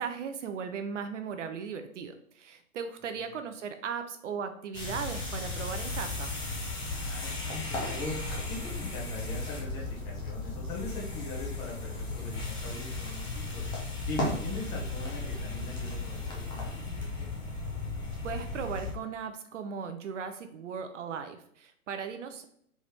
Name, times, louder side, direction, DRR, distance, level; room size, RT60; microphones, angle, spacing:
voice 1, 0.0-6.3 18.2-22.4, right 6 dB, 55° right, 8 dB, 0.5 m, -37 dB
sound 1, 4.7-18.9, left 2 dB, 10° left, 0.6 m, -35 dB
voice 2, 6.9-8.2 8.5-13.6 14.1-17.3, left 3 dB, 35° left, -3 dB, 1.6 m, -41 dB
4.1 x 3.5 x 3.2 m, 0.68 s
hypercardioid pair, 125°, 44 cm